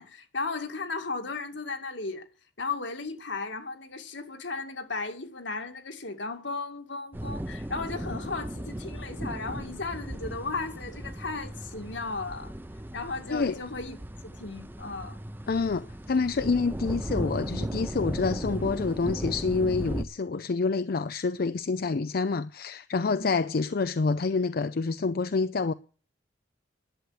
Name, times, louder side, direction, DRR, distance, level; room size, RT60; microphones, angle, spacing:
voice 1, 0.0-2.3 2.6-12.5 12.9-14.0 14.2-15.2 23.1-23.3, left 3 dB, 75° left, 2.2 m, -35 dB
sound 1, 7.1-20.0, right 1 dB, 10° right, 0.7 m, -36 dB
voice 2, 15.5-25.7, left 4 dB, 55° left, 0.5 m, -27 dB
11.5 x 8.2 x 7.9 m
head